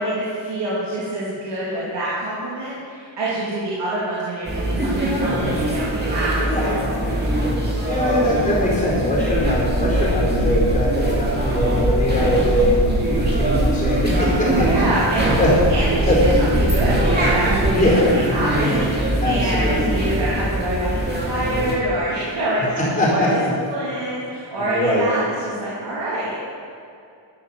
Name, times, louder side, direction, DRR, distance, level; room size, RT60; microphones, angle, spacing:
voice 1, 0.0-6.4 14.6-15.3 15.7-23.4 23.7-26.4, right 1 dB, 60° right, -8 dB, 2.9 m, -26 dB
sound 1, 4.5-21.8, right 1 dB, 20° right, 2.4 m, -21 dB
voice 2, 6.4-6.8 7.9-16.2 17.7-18.1 19.2-19.9 22.8-23.3 24.6-25.1, left 1 dB, 15° left, -6 dB, 4.4 m, -21 dB
12.0 x 11.5 x 6.8 m, 2.5 s
wide cardioid pair, 170°, 47 cm